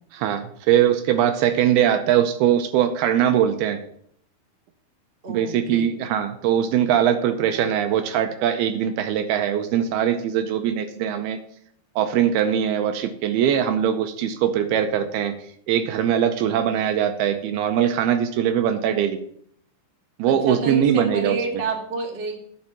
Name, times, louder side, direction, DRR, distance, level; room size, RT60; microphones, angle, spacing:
voice 1, 0.1-3.8 5.3-11.4 12.0-15.3 15.7-19.2 20.2-21.4, right 9 dB, 80° right, 8 dB, 2.5 m, -21 dB
voice 2, 5.2-5.9 20.2-22.4, right 3 dB, 45° right, 0 dB, 0.7 m, -29 dB
9.6 x 5.5 x 7.3 m, 0.66 s
omnidirectional pair, 4.8 m